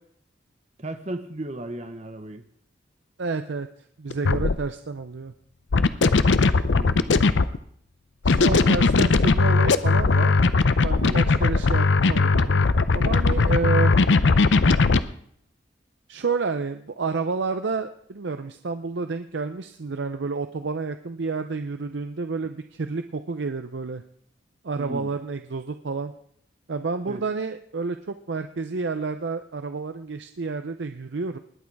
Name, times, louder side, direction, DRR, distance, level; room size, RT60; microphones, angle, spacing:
voice 1, 0.8-2.4 6.7-7.3 11.1-11.2 24.8-25.1 27.0-27.2, right 1 dB, 35° right, 8 dB, 0.9 m, -35 dB
voice 2, 3.2-3.7 4.0-5.3 8.2-10.3 10.8-12.6 12.9-13.9 16.1-24.0 24.6-26.1 26.7-31.4, right 4 dB, 65° right, 9 dB, 0.6 m, -29 dB
sound 1, 4.1-4.6 5.7-7.6 8.2-15.0, left 3 dB, 70° left, 0.6 m, -19 dB
20.0 x 8.6 x 4.7 m, 0.65 s
head